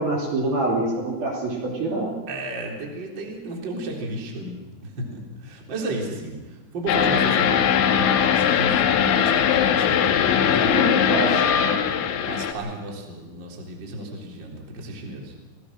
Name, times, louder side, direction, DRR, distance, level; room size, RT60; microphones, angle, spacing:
voice 1, 0.0-2.1 10.3-12.0, right 2 dB, 50° right, -2 dB, 4.3 m, -26 dB
voice 2, 2.3-11.4 12.3-15.3, right 1 dB, 25° right, -1 dB, 3.6 m, -33 dB
sound 1, 6.9-12.5, left 8 dB, 70° left, 3.4 m, -20 dB
28.5 x 18.5 x 6.4 m, 1.2 s
omnidirectional pair, 6.0 m